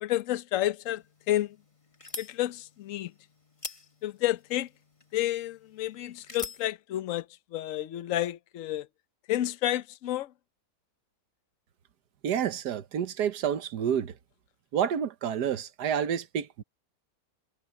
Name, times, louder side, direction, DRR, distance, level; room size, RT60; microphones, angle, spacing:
voice 1, 0.0-1.5 2.2-3.1 4.0-4.7 5.1-7.3 7.5-8.9 9.3-10.3, left 14 dB, 60° left, 1.1 m, -30 dB
sound 1, 0.8-6.7, left 3 dB, 20° left, 1.4 m, -46 dB
voice 2, 12.2-14.1 14.7-16.6, right 8 dB, 80° right, 1.6 m, -29 dB
omnidirectional pair, 1.7 m